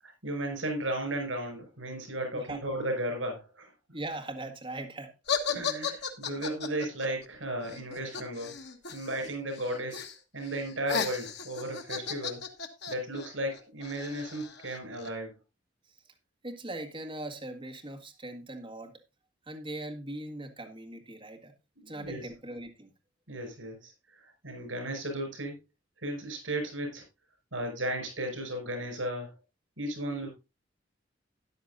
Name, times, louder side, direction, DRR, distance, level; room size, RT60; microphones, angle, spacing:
voice 1, 0.2-3.7 5.5-8.5 8.9-10.0 10.3-12.4 12.9-15.3 21.8-22.3 23.3-25.6 26.0-27.0 27.5-29.3 29.8-30.3, right 1 dB, 85° right, 5.9 m, -35 dB
voice 2, 3.9-5.1 15.9-16.0 16.4-19.0 19.5-21.5 21.9-22.9, right 1 dB, 25° right, 1.6 m, -40 dB
sound 1, 5.3-9.3 9.5-10.2 10.5-15.1, left 6 dB, 60° left, 1.4 m, -35 dB
13.0 x 10.0 x 2.6 m
head